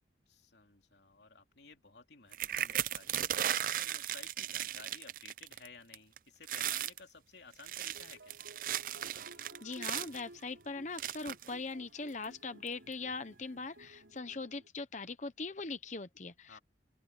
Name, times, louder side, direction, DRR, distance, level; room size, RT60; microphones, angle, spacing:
voice 1, 0.3-8.4 16.5-16.6, left 4 dB, 75° left, 2.9 m, -56 dB
sound 1, 2.3-5.7 5.9-6.2 6.4-7.0 7.5-10.2 11.0-11.5 12.2-12.3 12.7-12.9, right 11 dB, 50° right, 0.5 m, -36 dB
sound 2, 7.9-14.7, right 1 dB, 85° right, 4.7 m, -57 dB
voice 2, 9.6-16.6, left 3 dB, 40° left, 0.8 m, -41 dB
open air
head